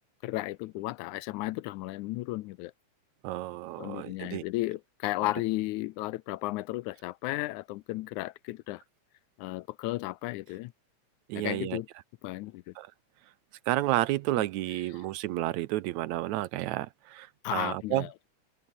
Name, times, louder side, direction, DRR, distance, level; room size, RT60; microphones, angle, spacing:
voice 1, 0.2-2.7 3.8-8.8 9.4-10.7 11.4-11.9 12.2-12.7 17.4-18.1, left 18 dB, 85° left, 2.0 m, -34 dB
voice 2, 3.2-4.4 5.2-5.3 11.3-11.8 12.8-12.9 13.7-18.1, right 16 dB, 75° right, 1.9 m, -31 dB
open air
omnidirectional pair, 3.5 m